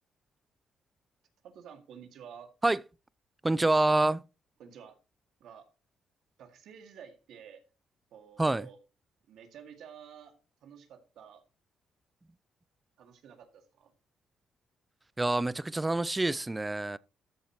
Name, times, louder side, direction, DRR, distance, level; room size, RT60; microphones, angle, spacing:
voice 1, 1.4-2.5 4.6-5.0 5.4-5.7 6.4-7.6 8.1-8.8 9.3-10.4 10.6-11.4 13.0-13.9, right 8 dB, 75° right, 2.1 m, -51 dB
voice 2, 3.4-4.2 8.4-8.7 15.2-17.0, right 2 dB, 15° right, 0.4 m, -27 dB
13.0 x 7.2 x 3.0 m
cardioid pair, 90°, 0 cm